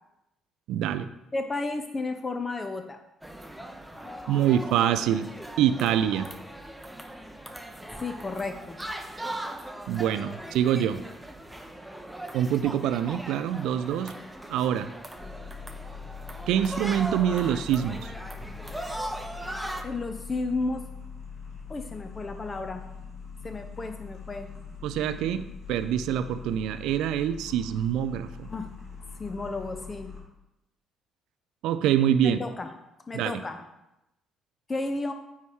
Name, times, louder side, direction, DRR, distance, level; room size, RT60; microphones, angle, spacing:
voice 1, 0.7-1.1 4.3-5.3 5.6-6.3 9.9-11.0 12.3-14.2 14.5-14.9 16.5-18.1 24.8-28.5 31.6-32.4 33.1-33.3, right 10 dB, 65° right, 11 dB, 0.3 m, -25 dB
voice 2, 1.3-3.0 4.0-4.4 8.0-8.8 19.8-20.8 21.7-22.8 23.4-24.5 28.5-28.7 29.2-30.1 32.2-32.7 33.1-33.6 34.7-35.1, left 3 dB, 30° left, 6 dB, 0.6 m, -32 dB
sound 1, 3.2-19.8, right 1 dB, 5° right, 0.7 m, -39 dB
sound 2, 15.1-30.2, left 5 dB, 45° left, 2.7 m, -42 dB
9.3 x 3.1 x 4.7 m, 0.90 s
figure-of-eight pair, 45°, 0 cm